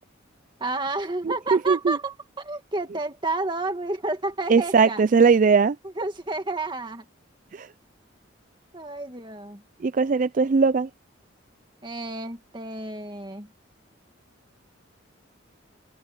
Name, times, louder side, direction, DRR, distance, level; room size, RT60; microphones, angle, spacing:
voice 1, 0.6-5.0 6.0-7.1 8.7-9.6 11.8-13.5, right 2 dB, 25° right, 1.8 m, -30 dB
voice 2, 1.2-2.0 4.5-5.8 7.5-7.7 9.8-10.9, right 5 dB, 40° right, 0.4 m, -20 dB
head